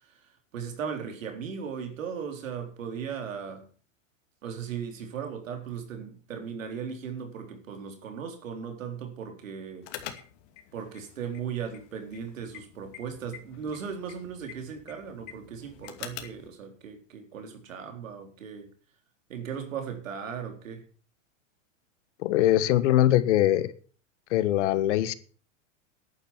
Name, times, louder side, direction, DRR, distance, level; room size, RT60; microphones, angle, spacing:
voice 1, 0.5-3.7 4.4-9.9 10.7-18.7 19.3-20.9, right 7 dB, 90° right, 4.2 m, -37 dB
sound 1, 9.8-16.5, left 11 dB, 45° left, 2.5 m, -46 dB
voice 2, 22.2-23.7 24.3-25.1, left 13 dB, 65° left, 1.6 m, -22 dB
11.0 x 9.3 x 7.3 m
supercardioid pair, 140°, 38 cm